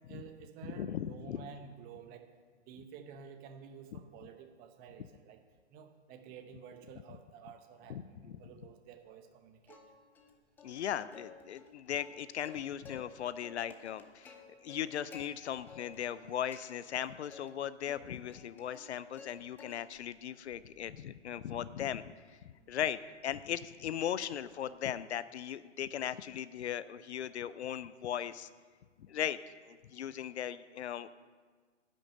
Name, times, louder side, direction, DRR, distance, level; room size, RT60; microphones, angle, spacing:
voice 1, 0.1-2.3 2.7-5.4 5.7-9.8 22.6-22.7, right 7 dB, 25° right, 7 dB, 0.9 m, -51 dB
voice 2, 0.6-1.5 7.9-8.4 10.6-14.3 14.6-22.1 22.4-28.5 29.0-29.4 29.6-31.1, left 10 dB, 65° left, 16 dB, 0.5 m, -38 dB
Plucked string instrument, 9.7-10.3 10.6-10.7 11.1-13.1 13.4-15.3 15.7-16.2 16.5-17.5 17.9-19.3 19.6-20.1 20.5-24.7, left 5 dB, 5° left, 0.4 m, -54 dB
9.9 x 6.4 x 7.6 m, 1.5 s
hypercardioid pair, 125°, 36 cm